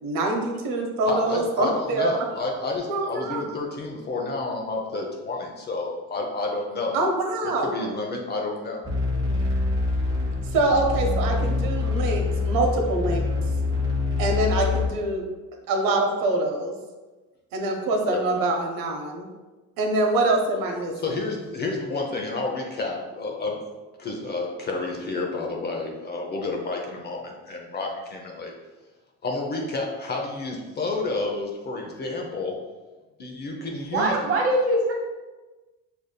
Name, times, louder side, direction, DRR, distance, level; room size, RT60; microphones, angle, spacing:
voice 1, 0.0-2.3 2.9-3.4 6.9-7.9 10.5-13.3 14.2-15.2 15.7-16.7 17.5-19.3 19.8-20.9, right 2 dB, 70° right, 2 dB, 0.8 m, -24 dB
voice 2, 1.1-7.1 7.4-8.8 18.1-18.2 21.0-23.6 24.0-28.5 29.2-32.6 33.2-34.1, left 3 dB, 30° left, 0 dB, 0.5 m, -30 dB
sound 1, 8.8-14.9, left 3 dB, 10° right, 0.8 m, -25 dB
voice 3, 33.9-34.9, right 1 dB, 40° right, 0 dB, 0.9 m, -22 dB
4.8 x 2.6 x 2.2 m, 1.2 s
cardioid pair, 125°, 35 cm